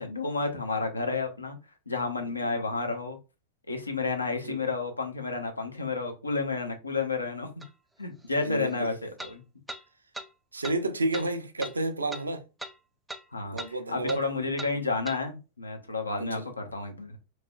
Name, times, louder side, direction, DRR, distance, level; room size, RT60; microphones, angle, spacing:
voice 1, 0.0-1.6 1.9-3.2 3.7-7.6 8.0-9.4 13.3-13.6 13.9-17.2, left 3 dB, 80° left, 0.7 m, -31 dB
sound 1, 7.6-7.7 9.2-9.3 9.7-9.8 10.1-10.3 10.6-10.8 11.1-11.3 11.6-11.7 12.1-12.3 12.6-12.8 13.1-13.2 13.6-13.7 14.1-14.2 14.6-14.7 15.1-15.2, right 1 dB, 5° right, 0.3 m, -39 dB
voice 2, 8.4-8.9 10.5-12.4 13.5-14.5 16.2-16.5, right 2 dB, 80° right, 0.5 m, -31 dB
3.1 x 2.9 x 2.3 m
figure-of-eight pair, 90°, 0 cm